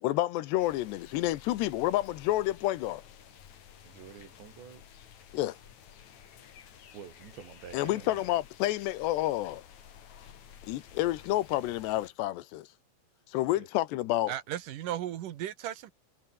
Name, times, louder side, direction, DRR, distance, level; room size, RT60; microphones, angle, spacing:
voice 1, 0.0-3.0 5.3-5.6 7.7-9.6 10.6-12.7 13.3-14.3, left 15 dB, 85° left, 3.2 m, -29 dB
sound 1, 0.6-12.1, left 8 dB, 50° left, 3.0 m, -53 dB
voice 2, 3.8-5.0 6.9-8.3 13.5-13.7, right 8 dB, 85° right, 5.7 m, -48 dB
voice 3, 14.3-15.9, right 11 dB, 65° right, 2.4 m, -36 dB
omnidirectional pair, 4.9 m